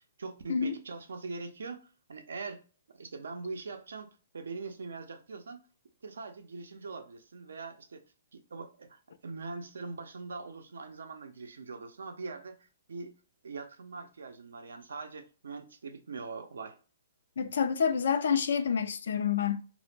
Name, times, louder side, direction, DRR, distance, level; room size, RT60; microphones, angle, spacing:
voice 1, 0.0-2.6 2.9-5.6 6.0-8.0 8.3-13.1 13.4-16.8, right 4 dB, 85° right, 0.5 m, -42 dB
voice 2, 17.4-19.6, left 7 dB, 75° left, 0.3 m, -28 dB
2.0 x 2.0 x 3.2 m
hypercardioid pair, 145°, 0 cm